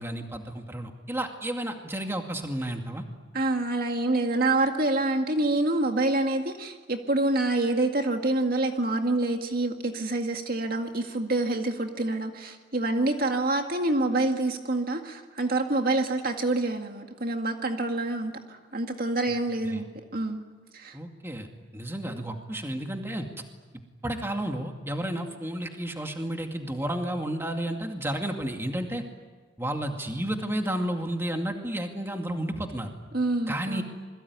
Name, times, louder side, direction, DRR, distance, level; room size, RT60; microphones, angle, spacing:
voice 1, 0.0-3.0 19.6-19.8 20.9-21.5 21.7-23.3 24.0-29.0 29.6-32.9 33.5-33.8, right 1 dB, 10° right, 3 dB, 2.3 m, -32 dB
voice 2, 3.3-19.9 20.1-20.4 20.7-21.0 33.1-33.8, right 2 dB, 50° right, 4 dB, 2.1 m, -27 dB
28.0 x 22.0 x 9.6 m, 1.4 s
head